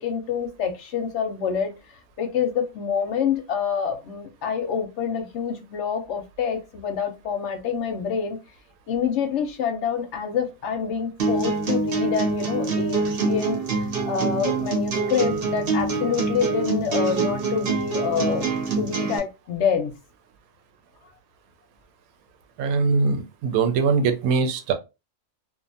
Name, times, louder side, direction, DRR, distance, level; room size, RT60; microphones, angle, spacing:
voice 1, 0.0-8.4 8.9-18.5 18.8-19.9, left 6 dB, 65° left, 0.8 m, -27 dB
sound 1, 11.2-19.2, right 3 dB, 50° right, 0.8 m, -25 dB
voice 2, 22.6-24.7, right 4 dB, 80° right, 1.0 m, -22 dB
2.5 x 2.3 x 2.6 m
omnidirectional pair, 1.5 m